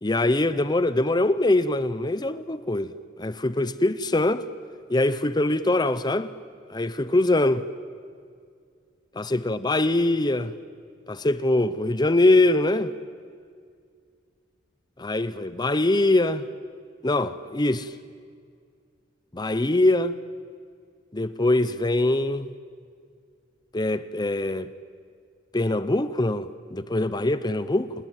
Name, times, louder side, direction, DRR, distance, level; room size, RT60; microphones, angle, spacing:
voice 1, 0.0-2.9 3.2-4.5 4.9-6.3 6.7-7.6 9.2-10.5 11.1-12.9 15.0-16.5 17.0-17.9 19.3-20.2 21.1-22.5 23.7-24.7 25.5-27.9, left 2 dB, 20° left, 0.8 m, -23 dB
29.0 x 20.0 x 9.2 m
head